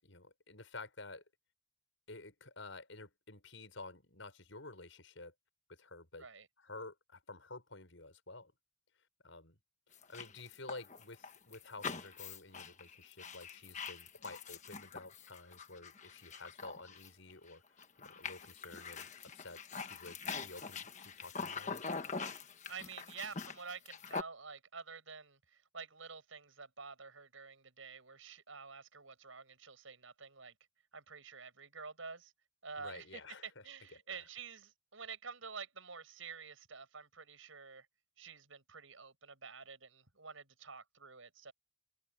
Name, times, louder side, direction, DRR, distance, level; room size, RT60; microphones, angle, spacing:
voice 1, 0.0-1.2 2.1-5.3 5.7-6.3 6.6-8.5 9.2-9.6 10.1-17.6 18.0-20.2 20.4-21.8 32.8-33.7 33.9-34.2, left 3 dB, 75° left, 6.2 m, -51 dB
sound 1, 9.9-17.5 17.8-24.2, left 5 dB, 35° left, 1.3 m, -44 dB
voice 2, 22.7-30.5 30.9-32.3 32.6-37.9 38.2-41.5, right 5 dB, 90° right, 7.6 m, -49 dB
head